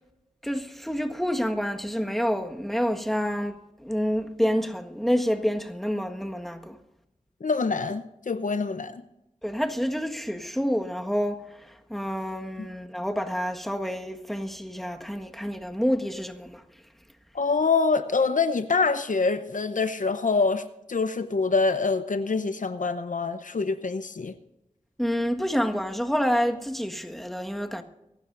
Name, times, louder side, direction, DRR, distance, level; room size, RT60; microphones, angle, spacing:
voice 1, 0.4-3.5 3.8-6.8 9.4-11.4 11.9-16.6 25.0-27.8, equal, ahead, 1.5 m, -28 dB
voice 2, 7.4-9.0 12.6-12.7 17.3-20.6 20.9-24.3, left 4 dB, 70° left, 0.8 m, -25 dB
24.0 x 12.5 x 2.6 m
cardioid pair, 40°, 14 cm